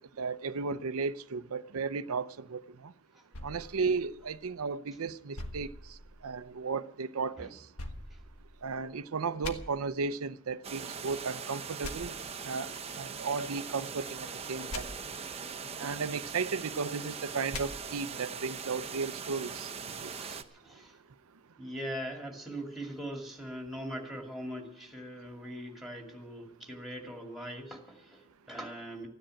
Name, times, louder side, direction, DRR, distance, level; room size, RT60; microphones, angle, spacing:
voice 1, 0.2-2.6 3.4-5.7 6.2-7.5 8.6-12.1 12.5-12.7 13.0-14.8 15.8-19.7, right 5 dB, 85° right, 0.6 m, -34 dB
voice 2, 3.1-3.7 7.4-7.5 8.1-8.2 20.1-21.0 21.6-29.1, equal, ahead, 2.3 m, -41 dB
sound 1, 3.3-4.8 5.3-6.6 7.8-8.9 9.4-9.5 11.8-11.9 14.7-14.8 17.5-17.6, left 2 dB, 80° left, 1.5 m, -42 dB
sound 2, 10.6-20.4, right 6 dB, 30° right, 0.7 m, -41 dB
sound 3, 13.9-17.5, right 1 dB, 40° left, 3.9 m, -58 dB
14.5 x 10.0 x 8.9 m
head